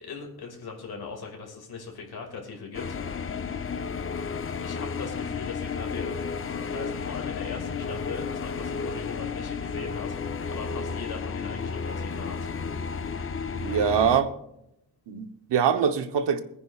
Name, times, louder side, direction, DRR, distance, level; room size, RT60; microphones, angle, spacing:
voice 1, 0.0-3.2 4.6-12.5, left 5 dB, 65° left, 2.3 m, -39 dB
sound 1, 2.7-14.2, left 5 dB, 35° left, 0.5 m, -32 dB
voice 2, 13.6-14.3 15.1-16.4, right 7 dB, 80° right, 1.0 m, -23 dB
22.0 x 9.9 x 2.4 m
wide cardioid pair, 180°, 41 cm